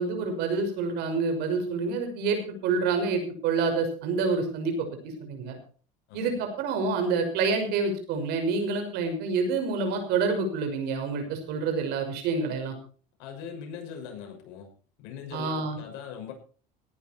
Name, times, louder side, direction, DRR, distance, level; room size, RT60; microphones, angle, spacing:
voice 1, 0.0-4.9 5.2-5.6 6.1-12.8 15.3-15.8, right 4 dB, 65° right, 6 dB, 6.1 m, -27 dB
voice 2, 13.2-14.7 15.0-16.3, left 7 dB, 70° left, 3 dB, 6.4 m, -40 dB
18.0 x 10.5 x 4.6 m, 0.42 s
supercardioid pair, 105°, 18 cm